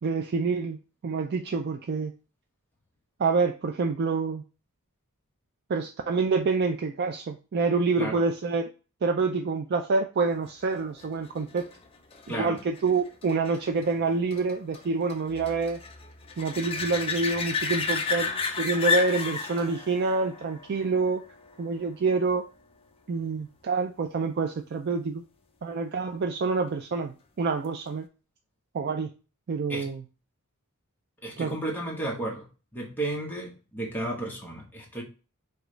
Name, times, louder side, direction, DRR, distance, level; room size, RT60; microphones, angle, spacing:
voice 1, 0.0-0.8 1.0-2.1 3.2-4.4 5.7-8.7 9.0-11.7 12.3-15.8 16.4-18.3 18.6-21.2 21.6-22.4 23.1-25.2 25.6-28.1 28.7-29.1 29.5-30.0 31.4-31.6, right 4 dB, 50° right, 5 dB, 0.4 m, -27 dB
sound 1, 10.7-22.0 27.6-27.7, left 5 dB, 25° left, 0.5 m, -33 dB
voice 2, 31.2-32.5 32.7-35.0, right 1 dB, 10° left, -1 dB, 1.0 m, -33 dB
4.9 x 2.4 x 3.6 m, 0.33 s
head